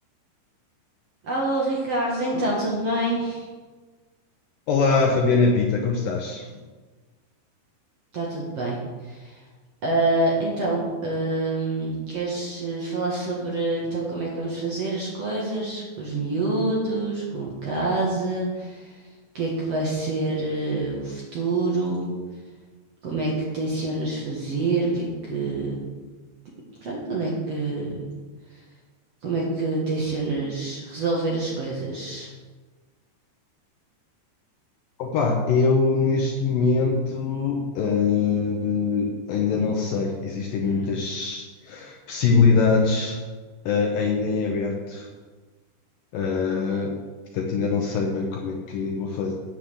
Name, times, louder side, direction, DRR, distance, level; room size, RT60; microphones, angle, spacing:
voice 1, 1.2-3.5 8.1-8.8 9.0-9.4 9.8-19.0 19.3-22.1 23.0-25.8 26.8-27.9 29.2-32.3, right 2 dB, 50° right, -4 dB, 2.0 m, -26 dB
voice 2, 4.7-6.4 35.0-43.2 43.7-45.1 46.1-47.0 47.3-49.3, left 4 dB, 70° left, 1 dB, 2.2 m, -23 dB
8.6 x 7.7 x 6.9 m, 1.4 s
omnidirectional pair, 4.9 m